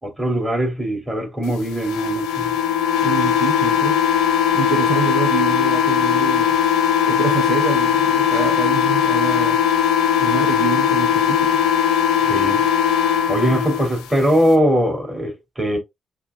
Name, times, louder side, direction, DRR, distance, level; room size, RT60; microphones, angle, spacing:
voice 1, 0.0-2.6 12.2-12.7 13.3-15.8, equal, 15° right, 3.1 m, -21 dB
sound 1, 1.8-13.9, left 8 dB, 80° left, 0.6 m, -18 dB
voice 2, 3.0-4.0 4.5-6.6 7.1-9.6 10.2-11.6, right 9 dB, 70° right, 0.5 m, -26 dB
7.0 x 2.4 x 2.4 m
hypercardioid pair, 40°, 0 cm